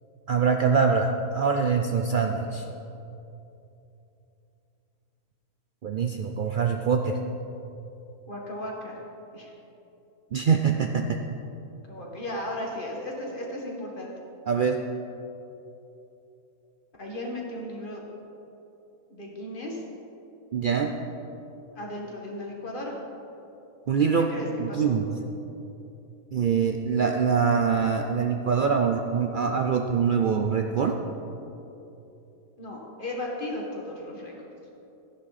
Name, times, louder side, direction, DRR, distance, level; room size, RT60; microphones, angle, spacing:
voice 1, 0.3-2.6 5.8-7.2 10.3-11.2 14.5-14.8 20.5-20.9 23.9-24.3 24.6-25.0 26.3-31.0, right 6 dB, 85° right, 4 dB, 0.4 m, -24 dB
voice 2, 8.3-9.0 9.3-9.5 11.8-14.1 17.0-18.0 19.1-19.9 21.7-23.0 24.2-25.0 32.6-34.3, left 1 dB, 35° left, -2 dB, 1.9 m, -35 dB
13.5 x 11.0 x 4.2 m, 2.9 s
omnidirectional pair, 1.6 m